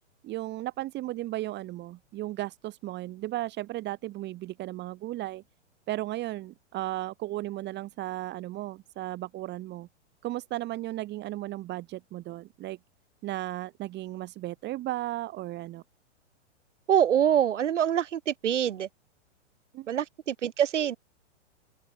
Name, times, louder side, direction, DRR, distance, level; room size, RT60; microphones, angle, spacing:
voice 1, 0.2-5.4 5.9-9.9 10.2-12.8 13.2-15.8 19.7-19.9, right 16 dB, 30° right, 2.7 m, -35 dB
voice 2, 16.9-18.9 19.9-21.0, right 9 dB, 75° right, 1.8 m, -25 dB
hypercardioid pair, 120°, 36 cm